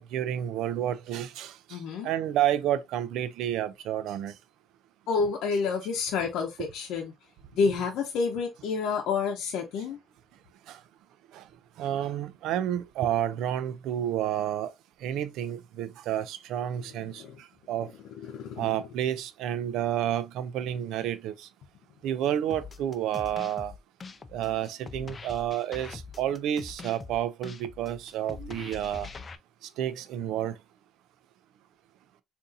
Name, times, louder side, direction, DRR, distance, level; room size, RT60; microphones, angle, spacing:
voice 1, 0.0-1.5 2.0-4.3 6.6-6.7 7.7-7.8 10.7-10.8 11.3-11.4 11.8-14.7 15.0-17.2 17.7-17.9 18.6-21.4 22.0-23.7 24.3-29.1 29.8-30.5, right 11 dB, 80° right, 0.4 m, -30 dB
voice 2, 1.7-2.1 5.1-7.1 7.6-10.0 17.2-17.4 18.2-18.7, left 5 dB, 75° left, 0.7 m, -29 dB
sound 1, 22.5-29.4, left 4 dB, 30° left, 0.4 m, -43 dB
3.8 x 2.6 x 2.6 m
cardioid pair, 120°, 0 cm